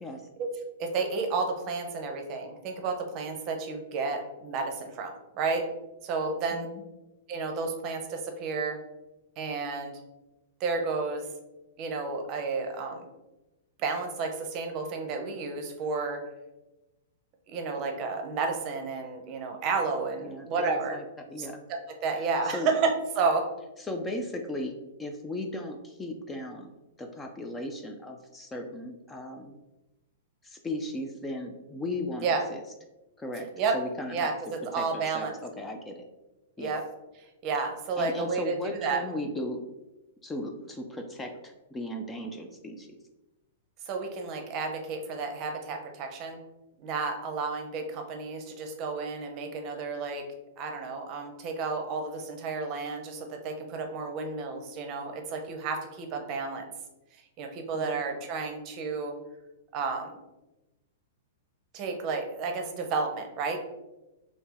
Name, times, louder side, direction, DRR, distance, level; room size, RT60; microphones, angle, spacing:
voice 1, 0.8-5.6 6.0-6.7 7.3-8.8 9.4-10.0 10.6-11.3 11.8-13.1 13.8-16.2 17.5-21.0 21.4-23.4 32.2-32.4 33.6-33.7 34.1-35.3 36.6-36.8 37.4-39.0 43.9-46.4 46.8-50.2 50.6-56.6 57.1-59.1 59.7-60.2 61.7-63.6, right 4 dB, 40° right, 4 dB, 0.6 m, -31 dB
voice 2, 6.5-6.8 20.2-21.6 22.4-22.7 23.8-26.7 27.0-29.5 30.4-32.6 33.2-33.5 33.7-34.3 34.7-36.0 36.6-36.8 38.0-39.6 40.2-43.0 57.7-58.0, left 1 dB, 15° left, 3 dB, 0.4 m, -37 dB
2.8 x 2.6 x 3.7 m, 1.0 s
hypercardioid pair, 125°, 0 cm